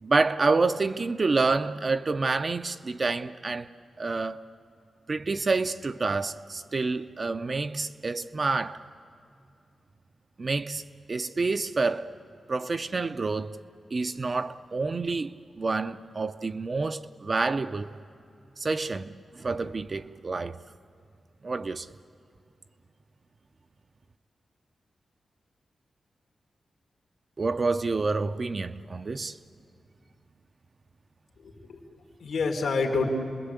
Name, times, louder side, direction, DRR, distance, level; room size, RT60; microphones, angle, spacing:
voice 1, 0.0-3.7 4.0-4.4 5.1-8.8 10.4-10.8 11.1-12.1 12.5-13.6 13.9-18.0 18.6-20.6 21.4-21.9 27.4-29.4, right 3 dB, 35° right, 0.5 m, -28 dB
voice 2, 31.4-33.1, left 4 dB, 80° left, 2.6 m, -29 dB
28.5 x 21.0 x 8.2 m
wide cardioid pair, 155°, 0 cm